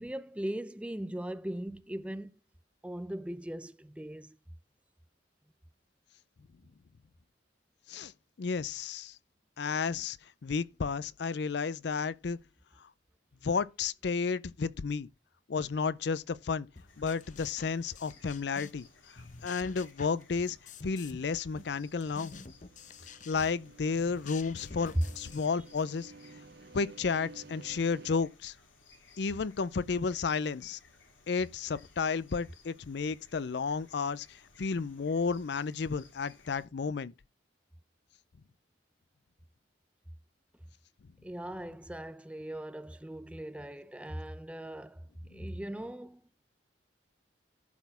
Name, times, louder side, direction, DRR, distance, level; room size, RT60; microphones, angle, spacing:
voice 1, 0.0-2.3 2.8-4.4 41.2-46.2, right 1 dB, 5° right, 0.5 m, -40 dB
voice 2, 8.4-9.2 9.6-10.2 10.4-12.4 13.4-15.1 15.5-16.7 17.0-18.9 19.4-20.6 20.8-22.4 23.3-26.1 26.7-28.5 29.2-30.8 31.3-37.1 45.3-45.4, left 5 dB, 60° left, 0.4 m, -32 dB
sound 1, 16.8-18.9 19.1-21.3 21.6-25.9, left 4 dB, 40° left, 0.8 m, -49 dB
sound 2, 16.9-36.7, left 4 dB, 85° left, 2.7 m, -61 dB
sound 3, 21.4-28.1, right 3 dB, 55° right, 0.7 m, -54 dB
11.5 x 4.2 x 6.8 m
head